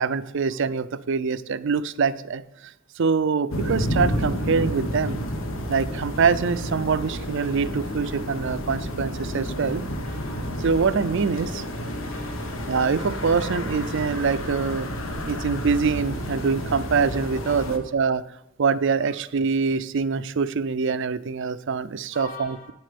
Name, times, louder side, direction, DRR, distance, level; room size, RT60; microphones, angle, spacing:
voice 1, 0.0-2.4 3.0-5.2 5.7-9.8 10.6-11.6 12.7-14.9 15.3-18.2 18.6-22.6, right 5 dB, 65° right, 14 dB, 0.5 m, -24 dB
sound 1, 3.5-17.8, equal, 70° left, 1.2 m, -30 dB
voice 2, 10.0-10.5 12.1-12.7 17.4-17.7 19.0-19.1 22.1-22.7, left 2 dB, 40° left, 1 dB, 3.0 m, -43 dB
9.6 x 7.5 x 5.2 m, 0.86 s
head